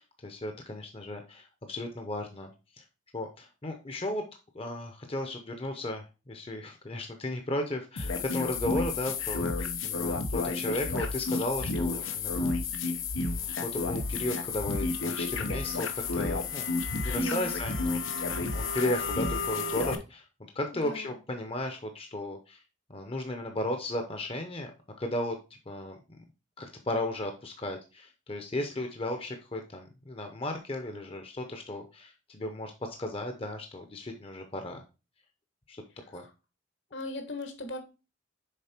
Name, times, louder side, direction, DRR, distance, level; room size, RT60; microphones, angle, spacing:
voice 1, 0.0-2.8 3.1-4.2 4.5-12.6 13.2-20.2 20.5-22.6 22.9-24.7 25.0-25.4 25.7-26.0 26.6-34.8 35.7-36.2, left 1 dB, 30° left, 0.8 m, -35 dB
sound 1, 8.0-19.9, left 3 dB, 85° left, 0.9 m, -31 dB
voice 2, 17.1-17.5 20.8-21.1 36.9-37.8, left 1 dB, 65° left, 1.5 m, -37 dB
6.8 x 4.3 x 4.4 m
head